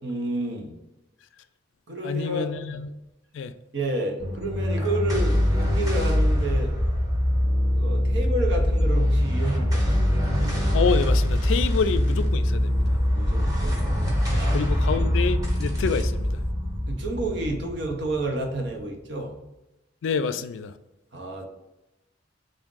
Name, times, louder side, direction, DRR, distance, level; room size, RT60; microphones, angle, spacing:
voice 1, 0.0-0.7 1.9-2.6 3.7-6.7 7.7-10.0 13.1-13.9 14.3-14.6 16.9-19.4 21.1-21.5, right 1 dB, 65° right, 0.8 m, -30 dB
voice 2, 2.0-2.9 3.3-3.5 10.7-13.0 14.3-16.4 20.0-20.7, left 5 dB, 80° left, 0.3 m, -27 dB
sound 1, 4.2-18.8, equal, 20° right, 0.9 m, -23 dB
3.5 x 2.6 x 3.8 m
head